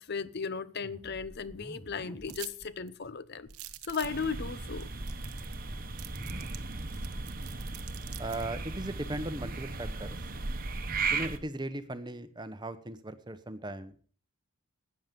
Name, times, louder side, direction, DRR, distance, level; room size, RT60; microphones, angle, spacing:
voice 1, 0.0-3.5 3.8-4.9, left 5 dB, 45° left, 0.6 m, -36 dB
sound 1, 0.8-2.7 3.0-3.1 3.4-3.9 4.3-6.5, equal, 5° left, 1.1 m, -50 dB
sound 2, 2.3-2.6 2.9-3.0 3.5-4.2 4.8-4.9 5.1-5.6 6.0-8.5, right 15 dB, 80° right, 1.0 m, -46 dB
sound 3, 4.0-11.4, right 3 dB, 40° right, 1.1 m, -36 dB
voice 2, 8.2-10.2 11.1-13.9, right 1 dB, 20° right, 0.9 m, -38 dB
13.5 x 9.6 x 5.2 m
head